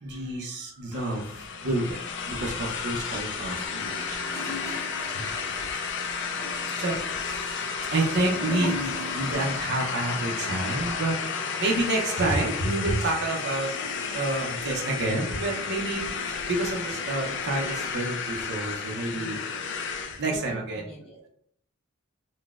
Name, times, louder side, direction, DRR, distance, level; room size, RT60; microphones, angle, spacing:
voice 1, 0.0-2.0 2.3-4.4 5.1-5.2 6.0-6.3 6.8-7.6 7.9-13.7 14.1-16.1 16.5-19.4 20.2-20.8, right 2 dB, 55° right, 0 dB, 0.5 m, -29 dB
sound 1, 0.9-20.2, left 5 dB, 60° left, 0.4 m, -32 dB
Gurgling / Toilet flush, 3.4-9.5 9.7-9.8, left 2 dB, 10° left, 0.6 m, -39 dB
voice 2, 11.3-11.8 13.6-14.2 19.1-19.7 20.3-21.3, right 1 dB, 30° left, -4 dB, 1.1 m, -45 dB
3.9 x 2.0 x 2.3 m, 0.64 s
head